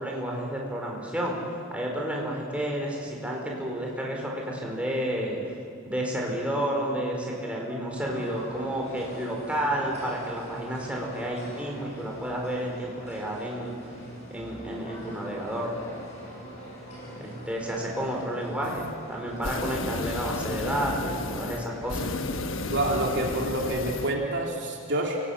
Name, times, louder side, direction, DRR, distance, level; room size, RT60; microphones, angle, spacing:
voice 1, 0.0-1.3 1.7-5.4 5.8-13.7 14.3-15.7 17.2-22.1, right 1 dB, 5° right, -2 dB, 4.6 m, -31 dB
sound 1, 7.9-24.5, equal, 30° left, 7.8 m, -43 dB
sound 2, 18.6-19.0 19.3-24.2, left 2 dB, 60° left, 1.2 m, -33 dB
voice 2, 22.7-25.2, right 1 dB, 55° right, 0 dB, 3.0 m, -27 dB
28.0 x 19.0 x 8.7 m, 2.3 s
head